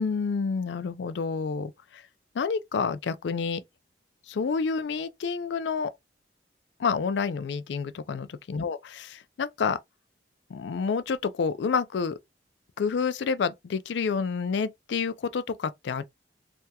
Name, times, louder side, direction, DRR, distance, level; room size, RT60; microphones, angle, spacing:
voice 1, 0.0-2.0 2.3-3.6 4.3-5.9 6.8-9.8 10.5-12.2 12.8-16.0, left 5 dB, 70° left, 0.4 m, -29 dB
3.3 x 2.2 x 2.8 m
head